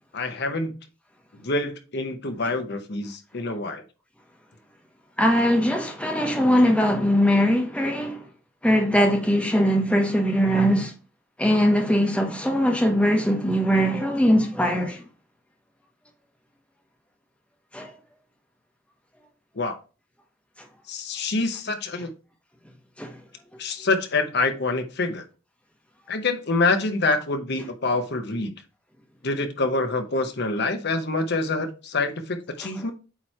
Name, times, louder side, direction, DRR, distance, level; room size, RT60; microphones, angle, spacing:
voice 1, 0.1-0.7 1.4-3.8 19.6-19.8 20.9-22.1 23.6-25.2 26.1-28.5 29.2-32.9, left 3 dB, 50° left, 0.9 m, -26 dB
voice 2, 5.2-8.3 8.6-10.9 11.4-15.0 17.7-17.9 23.0-23.2, equal, 5° left, 1.0 m, -21 dB
8.5 x 3.1 x 4.4 m
head